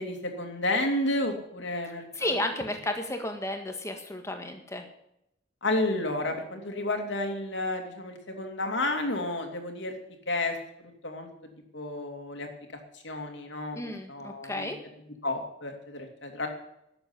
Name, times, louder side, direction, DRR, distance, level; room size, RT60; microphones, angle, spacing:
voice 1, 0.0-2.4 5.6-10.0 10.3-10.6 11.0-11.3 11.7-12.5 13.0-13.8 14.1-14.7 15.2-16.5, left 2 dB, 65° left, 4 dB, 2.7 m, -31 dB
voice 2, 2.2-4.8 13.7-14.8, left 1 dB, 15° left, 5 dB, 1.8 m, -33 dB
12.5 x 7.9 x 9.8 m, 0.79 s
head